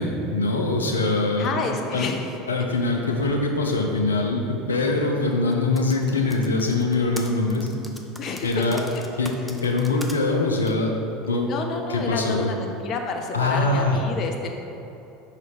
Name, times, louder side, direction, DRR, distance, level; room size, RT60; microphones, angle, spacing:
voice 1, 0.0-1.7 1.9-2.1 2.5-7.7 8.4-8.8 9.2-11.5 11.9-12.5 13.3-14.0, left 2 dB, 85° left, 2 dB, 0.6 m, -23 dB
voice 2, 1.4-2.4 8.2-8.7 8.9-9.0 11.5-14.5, left 4 dB, 45° left, 4 dB, 0.5 m, -29 dB
Typing, 5.5-10.2 10.7-10.8, equal, ahead, 0.6 m, -40 dB
5.2 x 4.1 x 5.0 m, 3.0 s
figure-of-eight pair, 75°, 0 cm